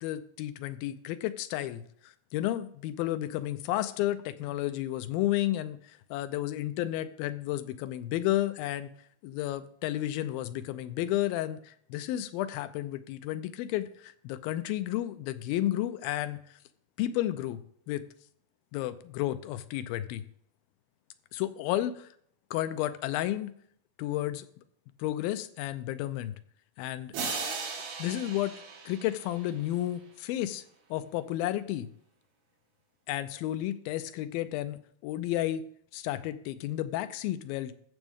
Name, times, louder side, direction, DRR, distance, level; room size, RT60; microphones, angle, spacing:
voice 1, 0.0-8.9 9.2-16.4 17.0-18.0 18.7-20.2 21.3-22.1 22.5-23.5 24.0-24.5 25.0-26.3 26.8-27.1 27.4-27.6 28.0-28.6 28.9-30.6 30.9-31.9 33.1-35.6 35.9-37.9, left 14 dB, 80° left, 12 dB, 2.2 m, -32 dB
sound 1, 27.1-29.8, right 4 dB, 75° right, 3.8 m, -37 dB
14.0 x 6.9 x 3.6 m, 0.63 s
omnidirectional pair, 4.6 m